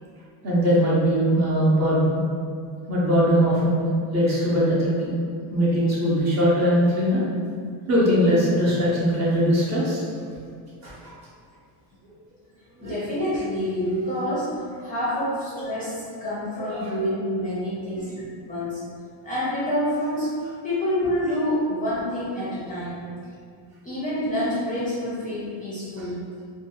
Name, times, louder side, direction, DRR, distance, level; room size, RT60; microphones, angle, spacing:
voice 1, 0.4-2.2 2.9-5.2 5.5-7.2 7.9-10.0 10.8-11.2 12.8-12.9 16.7-16.9, equal, 35° right, -7 dB, 0.6 m, -21 dB
voice 2, 12.8-14.5 14.8-18.8 19.2-20.3 20.6-23.1 23.8-26.2, equal, 20° left, -9 dB, 0.5 m, -27 dB
2.6 x 2.3 x 2.8 m, 2.2 s
cardioid pair, 145°, 49 cm